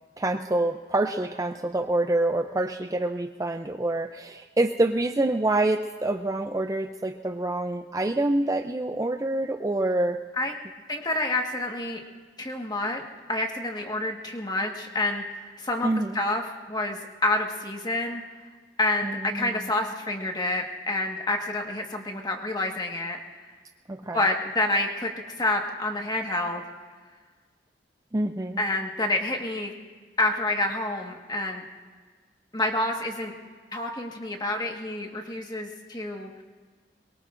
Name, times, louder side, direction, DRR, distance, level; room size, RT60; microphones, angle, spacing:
voice 1, 0.2-10.2 15.8-16.2 19.0-19.5 23.9-24.2 28.1-28.6, right 2 dB, 20° right, 6 dB, 0.4 m, -26 dB
voice 2, 10.9-12.0 12.4-13.0 13.3-18.2 18.8-23.2 24.1-25.1 25.4-26.6 28.6-29.7 30.2-31.6 32.5-33.3 33.7-36.3, left 2 dB, 25° left, 2 dB, 1.5 m, -28 dB
23.0 x 22.5 x 2.6 m, 1.5 s
head